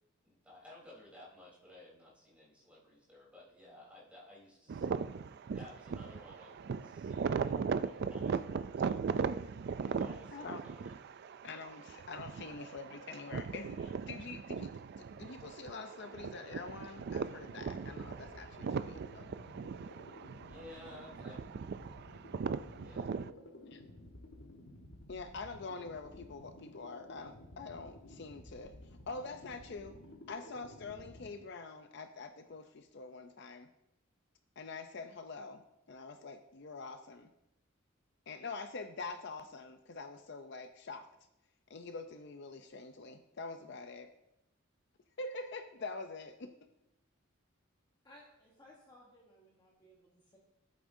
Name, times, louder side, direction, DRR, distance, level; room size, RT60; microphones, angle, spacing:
voice 1, 0.2-4.9 5.2-10.9 11.2-11.4 20.4-21.7 22.7-23.1, left 1 dB, 5° right, -6 dB, 3.5 m, -56 dB
sound 1, 4.7-23.3, right 5 dB, 50° right, 0.3 m, -39 dB
voice 2, 10.3-10.6 11.4-19.3 23.7-23.8 25.1-28.7 29.1-30.0 30.3-33.7 34.6-35.6 35.9-37.3 38.3-41.1 41.7-44.1 45.2-46.5, left 3 dB, 55° left, 8 dB, 0.5 m, -45 dB
sound 2, 17.7-31.3, left 1 dB, 85° left, 1.2 m, -54 dB
voice 3, 48.0-50.4, left 1 dB, 20° left, -3 dB, 1.2 m, -60 dB
15.0 x 8.4 x 2.7 m, 0.86 s
head